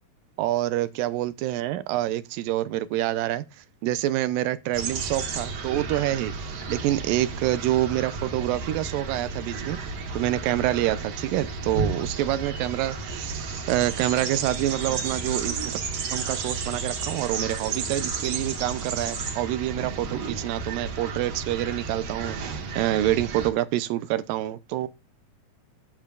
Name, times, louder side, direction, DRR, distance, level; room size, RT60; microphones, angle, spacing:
voice 1, 0.4-3.4 3.8-9.8 10.1-15.8 16.1-22.4 22.8-24.9, right 14 dB, 80° right, 2.3 m, -27 dB
sound 1, 4.7-23.5, right 4 dB, 55° right, 2.1 m, -32 dB
12.0 x 8.8 x 2.3 m
omnidirectional pair, 4.2 m